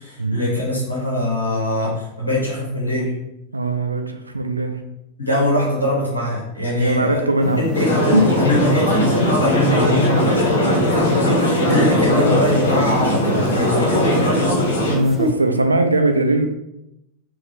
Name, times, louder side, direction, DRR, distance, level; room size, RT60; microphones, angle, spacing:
voice 1, 0.0-3.2 5.2-7.2 7.6-14.4, left 1 dB, 85° left, -5 dB, 1.2 m, -22 dB
voice 2, 3.5-4.8 6.7-7.7 8.1-8.2 14.9-16.5, right 2 dB, 80° right, 5 dB, 0.4 m, -20 dB
sound 1, 7.4-15.3, left 2 dB, 10° left, 0.5 m, -30 dB
sound 2, 7.7-14.9, equal, 65° left, 1.3 m, -19 dB
3.6 x 2.6 x 4.4 m, 0.86 s
figure-of-eight pair, 90°, 0 cm